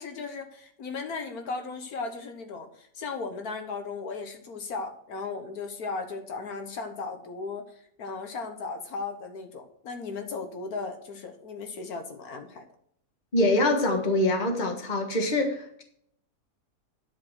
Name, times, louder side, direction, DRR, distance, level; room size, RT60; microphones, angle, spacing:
voice 1, 0.0-12.6, left 4 dB, 75° left, 6 dB, 1.6 m, -36 dB
voice 2, 13.3-15.8, left 1 dB, 30° left, 3 dB, 1.6 m, -24 dB
11.0 x 5.0 x 6.2 m, 0.67 s
omnidirectional pair, 1.6 m